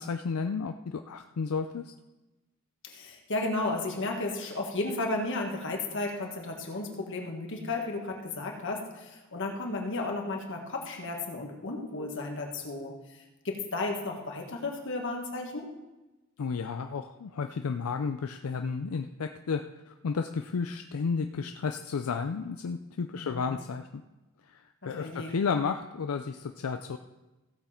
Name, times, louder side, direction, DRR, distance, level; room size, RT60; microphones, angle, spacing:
voice 1, 0.0-1.9 16.4-24.0 24.4-27.0, left 5 dB, 90° left, 7 dB, 0.5 m, -32 dB
voice 2, 2.8-15.7 23.2-23.5 24.8-25.3, left 2 dB, 60° left, 1 dB, 1.8 m, -34 dB
16.0 x 7.1 x 4.4 m, 1.1 s
head